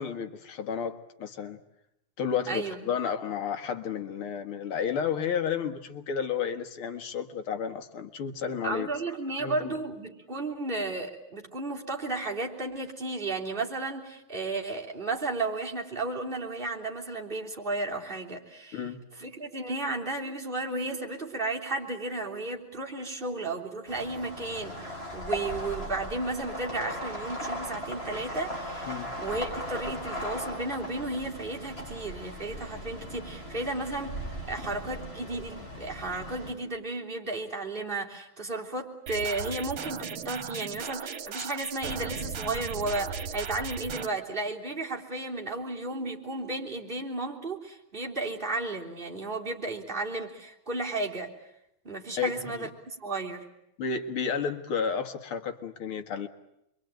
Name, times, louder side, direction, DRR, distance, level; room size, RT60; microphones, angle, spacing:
voice 1, 0.0-1.6 2.2-8.9 9.4-9.7 18.7-19.0 28.9-29.1 52.2-52.7 53.8-56.3, left 7 dB, 85° left, 7 dB, 2.4 m, -32 dB
voice 2, 2.5-2.8 8.6-18.8 19.2-34.2 34.5-51.3 51.8-53.5, right 2 dB, 25° right, -2 dB, 3.7 m, -33 dB
sound 1, 23.9-36.5, equal, 25° left, 7.2 m, -38 dB
sound 2, 39.1-44.1, right 6 dB, 75° right, 2.1 m, -37 dB
27.5 x 23.5 x 9.1 m, 0.81 s
omnidirectional pair, 2.3 m